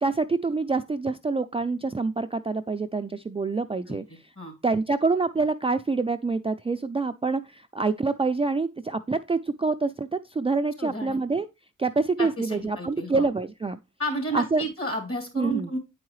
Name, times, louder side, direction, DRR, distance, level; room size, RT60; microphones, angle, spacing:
voice 1, 0.0-4.0 4.6-11.5 11.8-13.8 14.1-14.7 15.4-15.7, right 3 dB, 20° right, 0.4 m, -26 dB
voice 2, 10.8-11.2 12.2-13.3 14.0-15.8, right 1 dB, 40° left, 2.6 m, -32 dB
8.7 x 4.7 x 3.1 m
cardioid pair, 50°, 32 cm